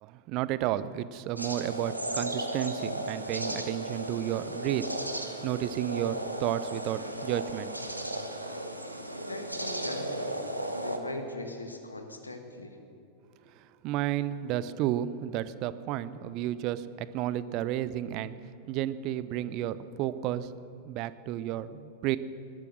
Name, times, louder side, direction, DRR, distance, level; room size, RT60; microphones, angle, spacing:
voice 1, 0.0-4.9 5.4-7.7 8.1-8.2 13.5-18.3 18.7-20.5 20.8-22.2, right 12 dB, 40° right, 16 dB, 0.6 m, -32 dB
sound 1, 1.4-11.0, right 1 dB, 85° right, 1.2 m, -35 dB
voice 2, 9.3-10.3 10.7-12.8, left 2 dB, 80° left, 6 dB, 1.5 m, -39 dB
18.5 x 12.0 x 6.3 m, 2.5 s
figure-of-eight pair, 90°, 0 cm